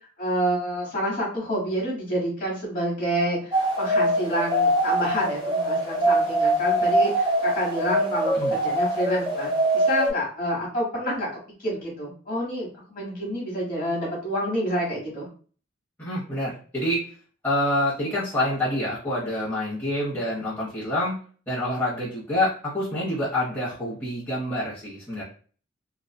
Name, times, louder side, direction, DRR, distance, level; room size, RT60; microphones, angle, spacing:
voice 1, 0.2-11.3 11.6-15.3, equal, 40° left, -3 dB, 1.1 m, -28 dB
sound 1, 3.5-10.1, right 1 dB, 20° right, 0.7 m, -23 dB
voice 2, 16.0-17.0 17.4-21.2 21.5-25.2, left 1 dB, 10° left, -9 dB, 0.8 m, -27 dB
2.5 x 2.3 x 2.2 m, 0.42 s
head